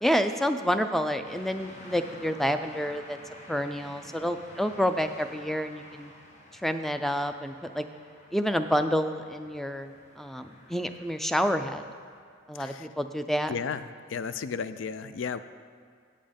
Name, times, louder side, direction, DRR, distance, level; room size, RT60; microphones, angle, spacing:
voice 1, 0.0-3.2 3.5-6.1 6.6-7.9 8.3-9.9 10.2-11.8 12.5-13.5, equal, ahead, 8 dB, 0.3 m, -28 dB
sound 1, 1.2-12.2, left 1 dB, 40° left, 1.3 m, -51 dB
voice 2, 13.5-13.8 14.1-15.4, left 6 dB, 80° left, 13 dB, 0.4 m, -33 dB
8.6 x 7.5 x 5.2 m, 2.2 s
head